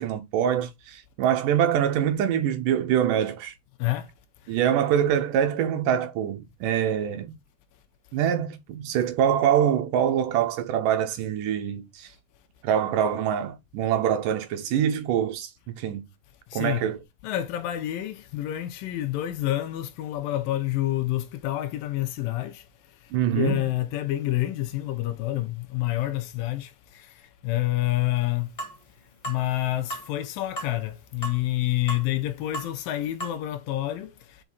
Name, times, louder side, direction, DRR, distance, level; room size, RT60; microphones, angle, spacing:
voice 1, 0.0-3.5 4.5-7.4 8.1-12.1 12.6-16.1 16.6-17.0 23.1-23.6, right 9 dB, 75° right, 2.2 m, -24 dB
voice 2, 3.8-4.1 4.4-4.6 16.5-16.8 17.2-28.6 29.3-34.4, left 15 dB, 80° left, 2.2 m, -28 dB
sound 1, 28.6-28.8 29.2-29.4 29.9-30.1 30.6-30.7 31.2-31.4 31.9-32.0 32.5-32.7 33.2-33.3, right 1 dB, 25° left, 0.9 m, -34 dB
6.0 x 4.9 x 3.9 m
omnidirectional pair, 4.3 m